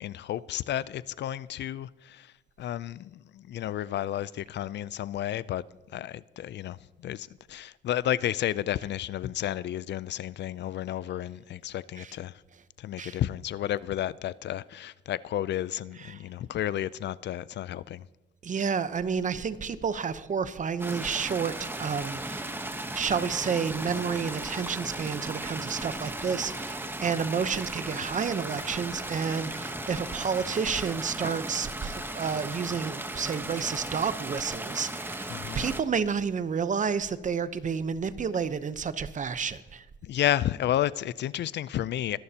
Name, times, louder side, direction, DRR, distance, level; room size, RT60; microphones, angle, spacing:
voice 1, 0.0-2.3 2.6-12.4 12.8-18.1 35.3-35.7 40.0-42.2, left 12 dB, 60° left, 0.4 m, -32 dB
voice 2, 18.4-22.5 22.9-35.3 35.6-39.8, right 6 dB, 40° right, 0.8 m, -30 dB
sound 1, 20.8-35.8, right 1 dB, 10° right, 1.1 m, -36 dB
22.5 x 11.0 x 2.9 m
cardioid pair, 90°, 20 cm